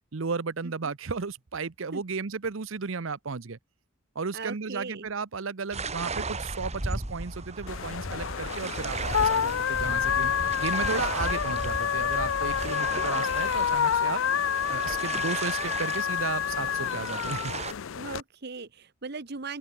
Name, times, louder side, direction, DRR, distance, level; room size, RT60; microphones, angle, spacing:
voice 1, 0.1-3.6 4.1-14.2 14.7-17.5, right 4 dB, 80° right, 0.8 m, -34 dB
voice 2, 0.6-0.9 1.9-2.0 4.3-5.1 17.9-19.6, right 4 dB, 55° right, 1.2 m, -38 dB
sound 1, 5.7-17.7, right 3 dB, 35° right, 2.9 m, -36 dB
sound 2, 7.7-18.2, left 8 dB, 85° left, 0.5 m, -28 dB
open air
head